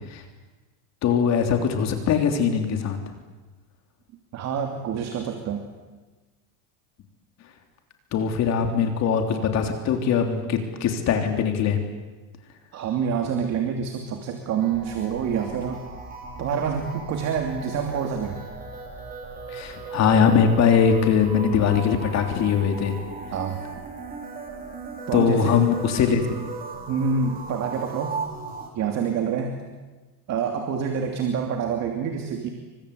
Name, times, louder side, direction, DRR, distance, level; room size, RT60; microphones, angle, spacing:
voice 1, 1.0-3.0 8.1-11.8 19.5-23.0 25.1-26.2, left 7 dB, 35° left, 5 dB, 3.4 m, -21 dB
voice 2, 4.3-5.6 12.7-15.8 16.4-18.4 23.3-23.6 25.1-25.5 26.9-28.2 28.7-29.6 30.3-32.5, right 6 dB, 35° right, 4 dB, 2.9 m, -27 dB
sound 1, 14.6-28.7, right 3 dB, 20° right, 4.3 m, -37 dB
29.0 x 24.5 x 8.4 m, 1.2 s
cardioid pair, 170°, 44 cm